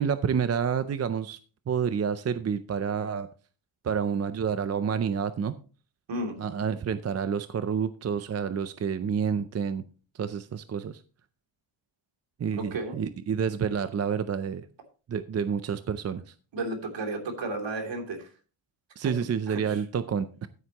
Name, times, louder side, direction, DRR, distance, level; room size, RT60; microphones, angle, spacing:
voice 1, 0.0-1.4 1.7-3.3 3.8-5.6 6.4-9.8 10.1-11.0 12.4-14.7 15.1-16.3 19.0-20.5, right 7 dB, 35° right, 11 dB, 0.5 m, -29 dB
voice 2, 12.5-13.0 16.5-18.3 19.5-19.8, right 2 dB, 60° right, 3 dB, 3.0 m, -33 dB
14.0 x 8.1 x 2.9 m, 0.36 s
wide cardioid pair, 160°, 49 cm